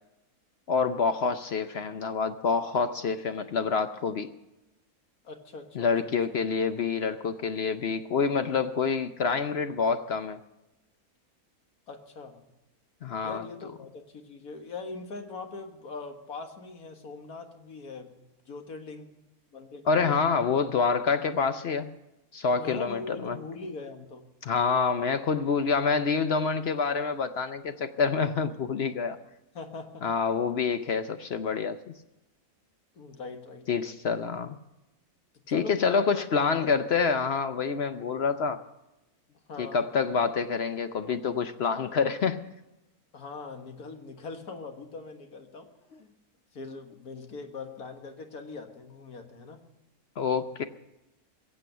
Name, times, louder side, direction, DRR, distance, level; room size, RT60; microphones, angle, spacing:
voice 1, 0.7-4.3 5.7-10.4 13.0-13.5 19.9-21.9 22.3-23.4 24.4-29.2 30.0-31.8 33.7-34.6 35.5-38.6 39.6-42.4 45.9-46.0 50.2-50.6, left 5 dB, 55° left, 10 dB, 0.7 m, -27 dB
voice 2, 5.2-6.1 11.9-12.4 13.2-19.1 19.5-20.2 22.6-24.2 29.5-30.0 33.0-33.8 35.5-36.7 39.5-39.8 43.1-45.7 46.0-46.1 46.5-49.6, left 4 dB, 80° left, 5 dB, 2.1 m, -41 dB
22.0 x 7.7 x 6.7 m, 0.98 s
omnidirectional pair, 1.6 m